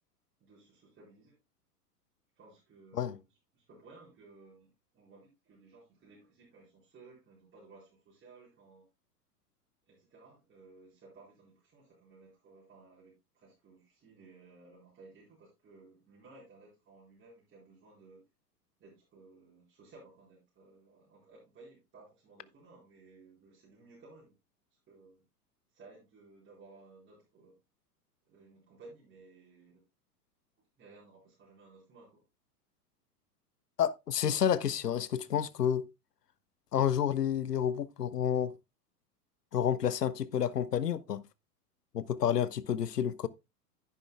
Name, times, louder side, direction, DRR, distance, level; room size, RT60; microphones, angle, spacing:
voice 1, 0.4-1.4 2.4-3.2 3.5-8.8 9.9-18.2 18.8-24.3 24.7-25.2 25.7-27.6 28.2-29.8 30.8-32.2, right 3 dB, 25° right, 4.5 m, -57 dB
voice 2, 33.8-35.9 36.7-38.5 39.5-41.2 41.9-43.3, left 9 dB, 85° left, 0.6 m, -30 dB
10.5 x 10.0 x 2.2 m
figure-of-eight pair, 100°, 46 cm